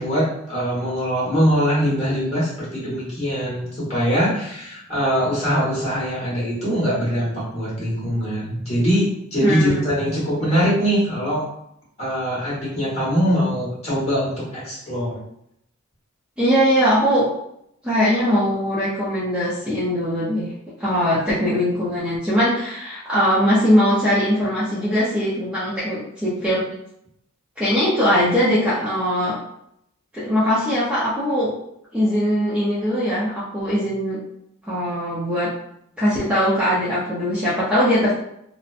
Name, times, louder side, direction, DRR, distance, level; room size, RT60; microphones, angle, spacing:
voice 1, 0.0-11.5 12.0-15.2, equal, 30° left, -8 dB, 1.2 m, -22 dB
voice 2, 9.4-9.8 16.4-17.3 17.8-20.5 20.8-26.6 27.6-29.4 30.1-31.5 31.9-34.2 34.7-35.5 36.0-38.1, equal, 5° right, -10 dB, 0.5 m, -20 dB
2.7 x 2.1 x 2.4 m, 0.76 s
head